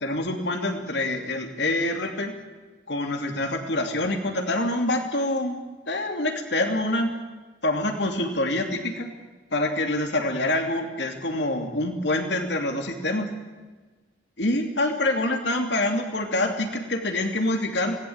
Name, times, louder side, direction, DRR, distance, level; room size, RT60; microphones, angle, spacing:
voice 1, 0.0-2.3 2.9-5.6 5.9-7.1 7.6-9.1 9.5-13.3 14.4-18.0, left 1 dB, 65° left, 4 dB, 2.9 m, -26 dB
26.5 x 19.0 x 8.8 m, 1.3 s
head